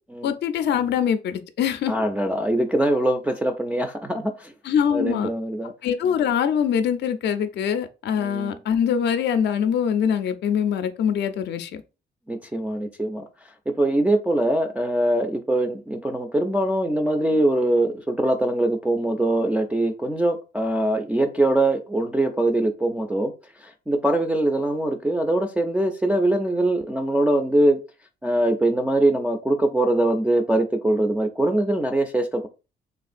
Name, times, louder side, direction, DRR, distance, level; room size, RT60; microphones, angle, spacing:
voice 1, 0.2-1.9 4.6-5.3 5.8-11.8, left 8 dB, 60° left, 0.4 m, -23 dB
voice 2, 1.9-4.5 4.9-5.7 8.2-8.6 12.3-23.3 23.6-27.8 28.2-32.5, right 1 dB, 5° right, 0.3 m, -22 dB
3.4 x 2.3 x 2.5 m
cardioid pair, 90°, 20 cm